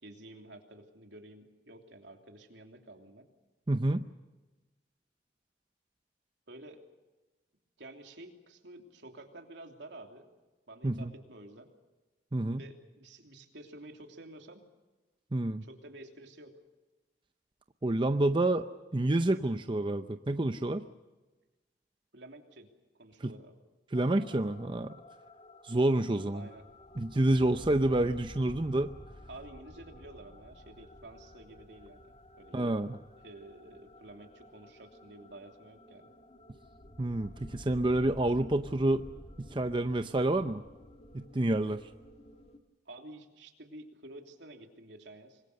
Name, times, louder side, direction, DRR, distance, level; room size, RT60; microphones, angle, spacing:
voice 1, 0.0-3.3 6.5-6.8 7.8-10.3 10.7-11.7 12.5-14.6 15.6-16.6 22.1-22.7 22.9-23.6 26.3-26.6 29.3-32.8 33.2-36.1 42.8-45.4, right 1 dB, 75° right, 3 dB, 3.1 m, -50 dB
voice 2, 3.7-4.1 10.8-11.1 12.3-12.6 15.3-15.6 17.8-20.8 23.2-23.3 23.9-24.9 25.6-26.5 27.0-28.9 32.5-33.0 37.0-39.0 39.4-40.6 41.1-41.8, right 1 dB, 25° right, 9 dB, 0.6 m, -28 dB
sound 1, 23.9-42.6, left 1 dB, 35° left, 1.8 m, -52 dB
25.5 x 21.0 x 6.7 m, 1.2 s
head